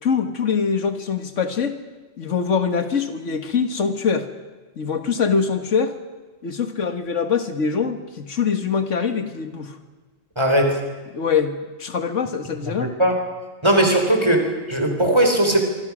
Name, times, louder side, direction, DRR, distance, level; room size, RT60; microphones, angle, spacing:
voice 1, 0.0-1.8 2.2-4.3 4.8-5.9 6.4-9.8 11.1-11.5 11.8-12.9, left 6 dB, 85° left, 8 dB, 1.8 m, -23 dB
voice 2, 10.4-10.8 12.7-13.2 13.6-15.6, right 1 dB, 20° right, 3 dB, 3.9 m, -19 dB
25.5 x 25.0 x 6.2 m, 1.3 s
omnidirectional pair, 1.2 m